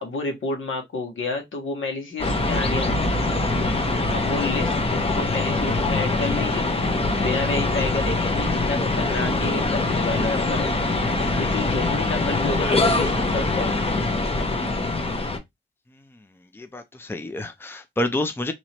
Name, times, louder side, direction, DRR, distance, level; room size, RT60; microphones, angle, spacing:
voice 1, 0.0-2.9 4.1-6.7 7.2-10.7 11.4-13.8, left 3 dB, 80° left, 1.4 m, -30 dB
sound 1, 2.2-15.4, left 2 dB, 30° left, 0.9 m, -23 dB
voice 2, 16.5-18.5, left 1 dB, 10° left, 0.5 m, -28 dB
3.0 x 3.0 x 4.2 m
wide cardioid pair, 100°, 20 cm